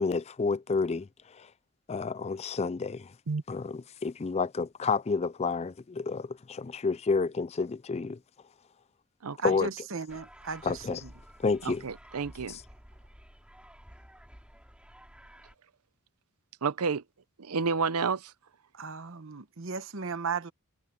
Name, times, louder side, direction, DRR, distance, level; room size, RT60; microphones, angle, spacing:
voice 1, 0.0-1.5 1.9-3.1 3.5-8.2 9.4-9.7 10.6-11.0 11.4-11.8 12.5-12.6, left 4 dB, 30° left, 0.4 m, -30 dB
voice 2, 9.4-11.1 18.7-20.5, right 5 dB, 60° right, 1.0 m, -36 dB
sound 1, 10.1-15.5, equal, 5° right, 6.4 m, -52 dB
voice 3, 11.6-12.6 16.6-17.0 17.4-18.3, right 5 dB, 80° right, 0.7 m, -30 dB
head